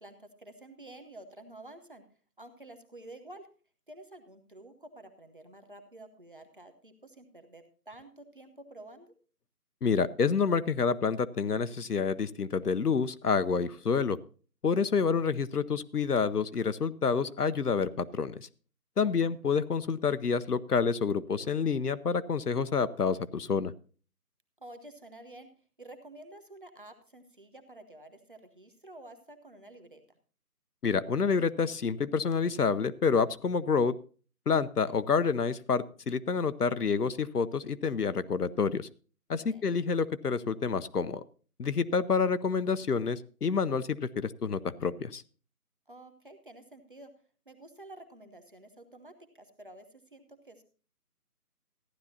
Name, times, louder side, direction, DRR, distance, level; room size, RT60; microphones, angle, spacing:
voice 1, 0.0-2.0 2.4-3.5 3.9-9.1 19.0-19.3 24.6-25.5 25.8-30.0 39.4-39.7 45.9-47.1 47.5-49.8 50.1-50.6, right 1 dB, 35° right, 7 dB, 1.1 m, -50 dB
voice 2, 9.8-14.2 14.6-18.5 19.0-23.7 30.8-33.9 34.5-38.9 39.3-41.2 41.6-45.2, left 5 dB, 75° left, 14 dB, 0.8 m, -28 dB
14.5 x 11.0 x 2.8 m, 0.39 s
figure-of-eight pair, 170°, 47 cm